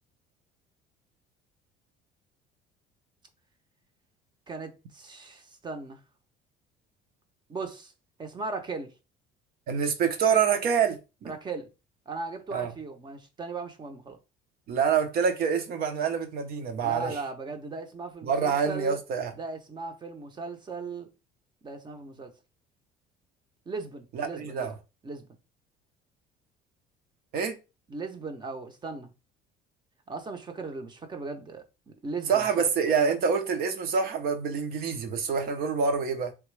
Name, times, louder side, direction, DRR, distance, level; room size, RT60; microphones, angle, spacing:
voice 1, 4.5-6.0 7.5-7.9 8.2-8.9 11.2-11.7 12.1-14.2 16.8-19.0 19.3-21.1 21.6-22.3 23.7-24.7 25.0-25.2 27.9-29.1 30.1-32.6, right 3 dB, 25° right, 0.8 m, -37 dB
voice 2, 9.7-11.3 12.5-12.7 14.7-17.1 18.2-19.3 24.1-24.7 27.3-27.6 32.3-36.3, right 6 dB, 60° right, 0.8 m, -26 dB
3.5 x 2.9 x 3.2 m
cardioid pair, 115°, 18 cm